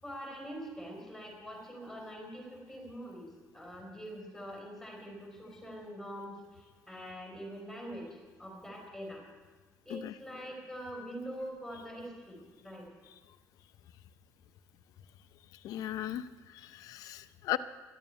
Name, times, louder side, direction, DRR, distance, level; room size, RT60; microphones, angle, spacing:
voice 1, 0.0-3.3 3.5-8.1 8.4-9.2 9.8-12.9, equal, 5° left, -1 dB, 4.5 m, -44 dB
voice 2, 15.6-17.6, left 13 dB, 70° left, 12 dB, 0.7 m, -37 dB
12.0 x 9.0 x 9.7 m, 1.4 s
cardioid pair, 140°, 6 cm